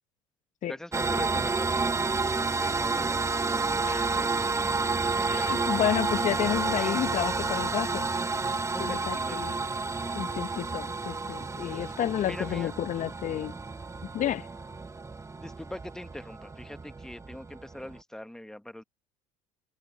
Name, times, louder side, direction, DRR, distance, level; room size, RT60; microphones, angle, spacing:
voice 1, 0.7-4.7 8.7-10.2 12.2-12.7 15.4-18.8, left 1 dB, 5° left, 1.7 m, -43 dB
sound 1, 0.9-18.0, right 4 dB, 15° right, 1.3 m, -30 dB
voice 2, 5.2-8.1 8.8-9.5 10.1-13.5 14.1-14.5, left 11 dB, 45° left, 1.4 m, -31 dB
hypercardioid pair, 65°, 17 cm